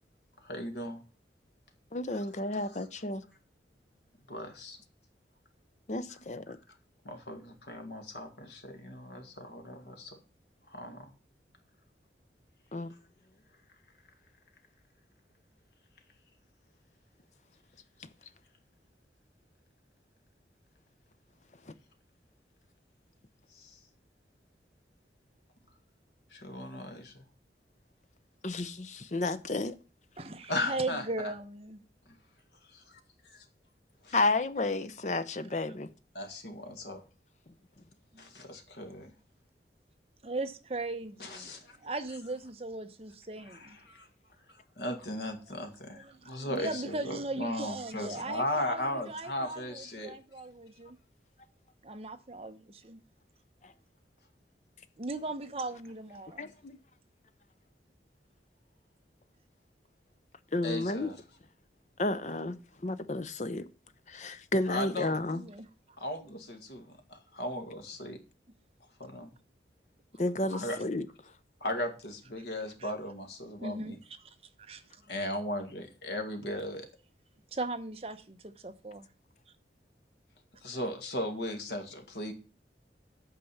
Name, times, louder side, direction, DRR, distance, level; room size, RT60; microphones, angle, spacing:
voice 1, 0.4-1.0 4.3-4.8 7.0-10.2 10.7-11.1 23.5-23.8 26.3-27.2 30.5-31.3 32.1-32.2 32.7-33.0 33.3-33.4 34.0-34.1 36.1-37.0 38.2-39.1 41.2-41.8 43.5-44.1 44.8-50.1 60.6-61.2 64.7-65.2 66.0-68.2 69.0-69.3 70.5-70.8 71.6-74.0 75.1-76.9 80.6-82.3, left 1 dB, 75° left, 1.9 m, -37 dB
voice 2, 1.9-3.2 5.9-6.6 12.7-12.9 18.0-18.1 21.7-21.8 28.4-29.7 34.1-35.9 53.6-53.7 56.4-56.8 60.5-61.1 62.0-62.6 62.8-63.7 64.1-65.4 70.2-71.1, left 2 dB, 40° left, 0.7 m, -32 dB
voice 3, 30.2-31.8 38.1-38.3 40.2-43.8 45.9-51.0 51.8-53.0 55.0-56.5 65.3-65.7 72.8-72.9 73.6-74.0 74.2-74.8 77.5-79.1, right 2 dB, 35° right, 0.8 m, -38 dB
8.6 x 5.2 x 7.2 m
head